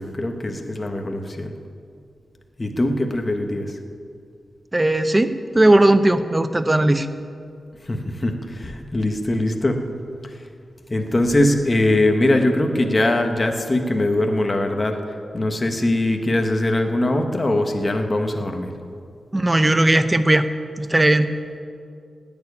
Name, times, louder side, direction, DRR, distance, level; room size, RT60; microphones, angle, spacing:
voice 1, 0.0-1.5 2.6-3.7 7.9-9.8 10.9-15.0 15.3-18.7, left 1 dB, 25° left, 4 dB, 1.2 m, -21 dB
voice 2, 4.7-7.1 19.3-20.5 20.8-21.3, right 1 dB, 15° right, 10 dB, 0.7 m, -17 dB
17.0 x 7.1 x 9.7 m, 2.3 s
wide cardioid pair, 130°, 0 cm